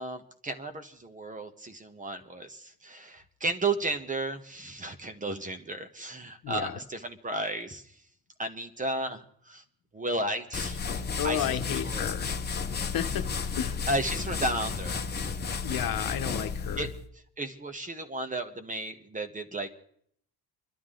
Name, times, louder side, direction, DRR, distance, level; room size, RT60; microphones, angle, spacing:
voice 1, 0.0-7.9 8.4-9.6 9.9-11.6 11.8-12.1 13.9-15.1 16.8-16.9 17.4-19.7, right 2 dB, 20° right, 1.2 m, -33 dB
voice 2, 6.4-6.8 11.2-12.3 12.9-13.3 13.6-13.8 15.6-16.9, left 10 dB, 70° left, 1.1 m, -32 dB
sound 1, 10.5-17.0, left 5 dB, 25° left, 1.2 m, -33 dB
30.0 x 12.0 x 3.8 m
cardioid pair, 145°, 36 cm